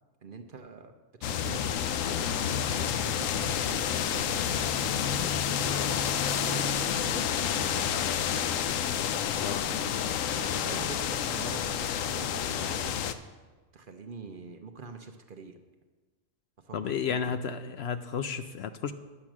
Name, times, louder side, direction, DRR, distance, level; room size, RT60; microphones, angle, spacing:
voice 1, 0.2-0.9 1.2-2.3 2.7-6.7 7.1-8.5 9.5-9.9 10.4-13.0 13.7-15.6 16.7-17.4, right 4 dB, 50° right, 6 dB, 0.8 m, -44 dB
sound 1, 1.2-13.1, left 8 dB, 85° left, 1.0 m, -29 dB
voice 2, 16.7-18.9, left 7 dB, 65° left, 10 dB, 0.7 m, -32 dB
10.0 x 7.7 x 6.0 m, 1.3 s
omnidirectional pair, 1.3 m